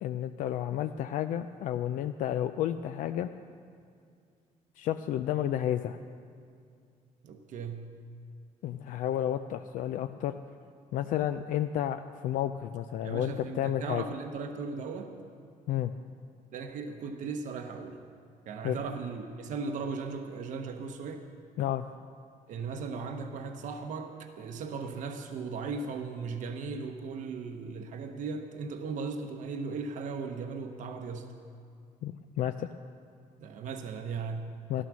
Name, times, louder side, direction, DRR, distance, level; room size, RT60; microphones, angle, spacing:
voice 1, 0.0-3.3 4.8-6.0 8.6-10.4 10.9-14.0 15.7-15.9 18.6-18.8 21.6-21.8 32.0-32.7 34.7-34.8, left 11 dB, 75° left, 9 dB, 0.4 m, -31 dB
voice 2, 7.2-7.9 13.0-15.1 16.5-18.0 18.5-21.2 22.5-31.3 33.4-34.8, right 4 dB, 65° right, 5 dB, 1.0 m, -37 dB
12.5 x 12.5 x 6.2 m, 2.3 s
cardioid pair, 135°, 14 cm